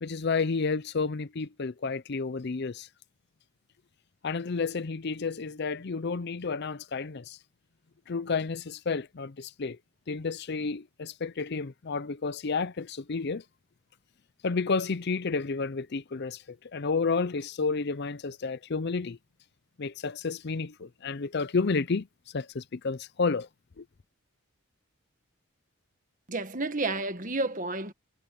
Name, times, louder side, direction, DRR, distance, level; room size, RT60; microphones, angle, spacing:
voice 1, 0.0-2.9 4.2-7.4 8.1-9.8 10.1-13.4 14.4-16.4 16.7-19.2 19.8-22.1 22.3-23.5 23.8-23.9, left 4 dB, 50° left, 0.5 m, -31 dB
voice 2, 26.3-27.9, right 2 dB, 35° right, 1.7 m, -31 dB
head